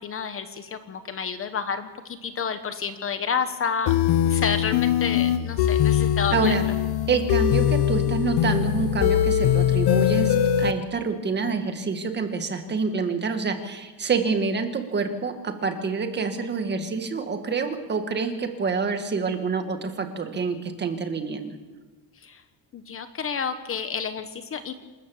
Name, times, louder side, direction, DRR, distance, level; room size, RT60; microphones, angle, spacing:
voice 1, 0.0-3.9 4.3-6.6 22.2-22.4 22.7-24.7, left 6 dB, 30° left, 10 dB, 1.0 m, -30 dB
sound 1, 3.9-10.7, left 10 dB, 65° left, 1.1 m, -22 dB
voice 2, 6.3-6.6 7.1-21.5, right 5 dB, 25° right, 7 dB, 1.7 m, -27 dB
27.5 x 13.0 x 7.2 m, 1.3 s
cardioid pair, 170°, 42 cm